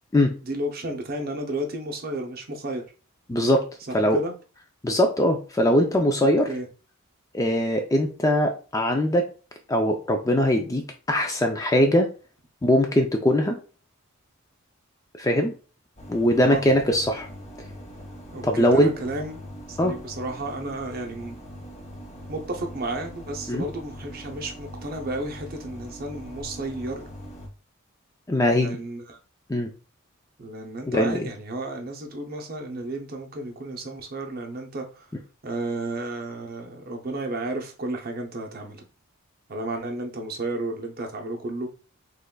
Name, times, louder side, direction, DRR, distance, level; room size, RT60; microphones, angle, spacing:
voice 1, 0.4-2.8 3.9-4.3 6.2-6.7 16.3-16.6 18.3-19.4 19.7-21.4 22.3-27.0 28.6-29.2 30.4-35.1 35.4-38.9 39.5-41.7, right 1 dB, 45° right, 3 dB, 0.6 m, -32 dB
voice 2, 3.3-3.6 3.9-4.2 4.8-6.5 7.3-9.3 9.7-12.1 12.6-13.6 15.2-15.5 16.1-17.3 18.4-18.9 19.8-19.9 23.5-23.6 28.3-28.8 29.5-29.7 30.9-31.3, left 1 dB, 15° left, 4 dB, 0.3 m, -21 dB
sound 1, 16.0-27.5, equal, 30° left, 0.7 m, -41 dB
3.7 x 3.1 x 2.2 m, 0.35 s
head